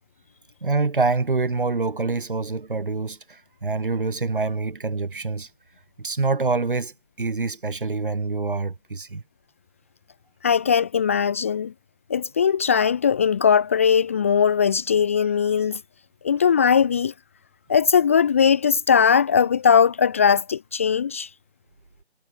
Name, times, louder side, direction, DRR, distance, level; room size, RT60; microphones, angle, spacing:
voice 1, 0.6-5.5 6.0-9.2, right 3 dB, 50° right, 7.1 m, -26 dB
voice 2, 10.4-11.7 12.1-15.8 16.2-17.1 17.7-21.3, left 7 dB, 15° left, 1.1 m, -19 dB
figure-of-eight pair, 155°, 32 cm